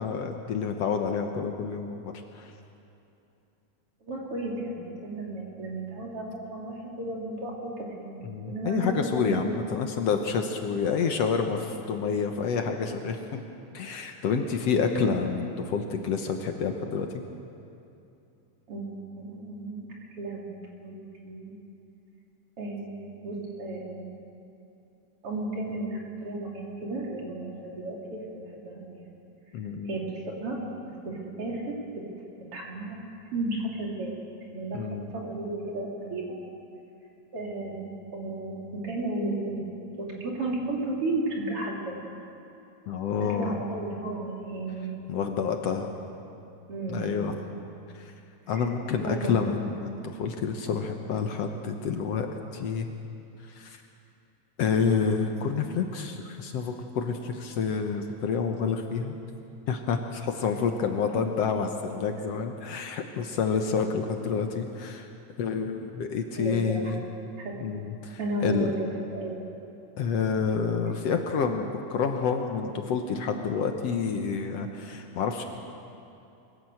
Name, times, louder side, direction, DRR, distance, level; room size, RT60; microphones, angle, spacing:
voice 1, 0.0-2.5 8.2-13.2 13.7-17.2 29.5-29.9 34.7-35.1 42.9-43.6 45.1-45.9 46.9-47.3 47.9-48.1 48.5-52.3 52.5-52.9 53.4-53.8 54.6-59.2 59.7-65.1 65.4-67.0 67.6-68.7 70.0-75.4, left 6 dB, 65° left, 5 dB, 2.0 m, -28 dB
voice 2, 4.0-9.5 14.1-14.4 14.8-15.2 18.7-19.9 20.2-21.6 22.6-24.1 25.2-29.1 29.9-30.6 30.8-32.0 32.4-33.0 33.3-34.1 34.5-36.3 37.3-39.6 40.0-42.0 43.2-44.9 46.7-47.3 48.5-49.5 61.1-61.2 66.4-66.9 67.4-67.6 68.2-69.4, right 2 dB, 50° right, -2 dB, 3.8 m, -34 dB
23.0 x 16.5 x 7.8 m, 2.8 s
omnidirectional pair, 3.3 m